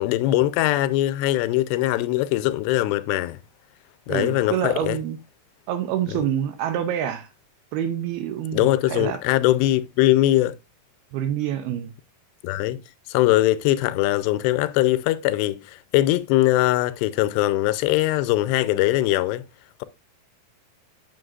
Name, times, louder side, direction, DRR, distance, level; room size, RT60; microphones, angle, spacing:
voice 1, 0.0-3.4 4.1-5.0 8.5-10.5 12.4-12.8 13.1-19.4, left 16 dB, 85° left, 2.6 m, -21 dB
voice 2, 4.1-5.2 5.7-7.3 7.7-9.2 11.1-11.9, right 10 dB, 80° right, 2.3 m, -27 dB
7.8 x 7.6 x 2.4 m
omnidirectional pair, 5.0 m